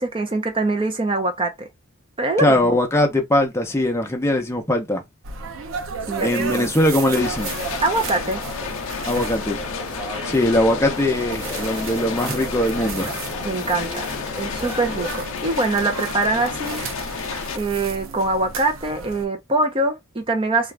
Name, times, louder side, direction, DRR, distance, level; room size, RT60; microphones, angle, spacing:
voice 1, 0.0-1.7 2.2-2.6 6.1-6.7 7.8-8.4 13.4-14.1 14.4-16.8 17.5-20.7, right 2 dB, 25° right, 0.7 m, -23 dB
voice 2, 2.4-5.0 6.2-7.5 9.1-9.7 10.3-13.1, left 1 dB, 15° left, 0.6 m, -21 dB
sound 1, 5.2-19.3, right 4 dB, 65° right, 0.6 m, -33 dB
sound 2, 7.2-17.6, left 6 dB, 65° left, 0.4 m, -31 dB
sound 3, 7.4-15.1, equal, 5° right, 1.3 m, -37 dB
2.4 x 2.4 x 3.2 m
head